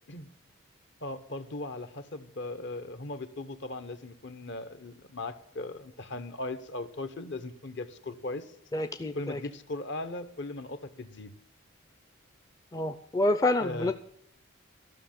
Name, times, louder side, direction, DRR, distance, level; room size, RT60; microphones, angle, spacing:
voice 1, 1.0-8.5 9.1-11.3 13.6-13.9, left 2 dB, 55° left, 11 dB, 1.0 m, -38 dB
voice 2, 8.7-9.4 12.7-13.9, left 2 dB, 15° left, 8 dB, 0.5 m, -28 dB
14.0 x 6.4 x 9.0 m, 0.67 s
head